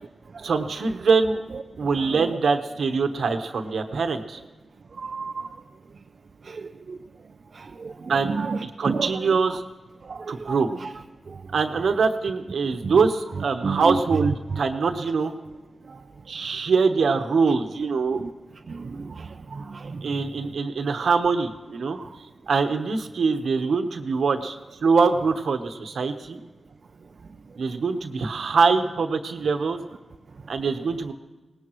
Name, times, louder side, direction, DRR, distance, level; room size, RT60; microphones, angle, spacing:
voice 1, 0.4-1.4 1.8-4.4 8.1-9.6 10.3-10.7 11.5-15.3 16.3-18.2 20.0-22.0 22.5-26.4 27.6-29.8 30.5-31.1, right 4 dB, 85° right, 6 dB, 1.1 m, -23 dB
voice 2, 5.0-5.5 6.5-6.6 6.9-7.0 7.8-7.9 8.2-9.2 10.1-10.9 12.8-12.9 13.6-14.6 15.9-16.0 18.2-18.3 18.7-19.1 19.5-19.9 21.9-22.0, right 4 dB, 60° right, 5 dB, 0.5 m, -30 dB
23.5 x 18.5 x 3.1 m, 1.2 s
cardioid pair, 75°, 0 cm